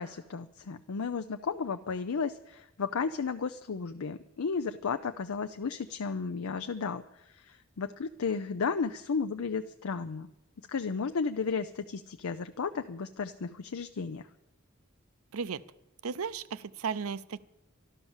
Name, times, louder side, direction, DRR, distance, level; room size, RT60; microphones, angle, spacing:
voice 1, 0.0-7.0 7.5-10.3 10.7-14.2, left 5 dB, 85° left, 7 dB, 0.6 m, -33 dB
voice 2, 15.3-15.6 16.0-17.4, right 6 dB, 90° right, 16 dB, 0.6 m, -35 dB
12.5 x 12.0 x 7.2 m, 0.87 s
head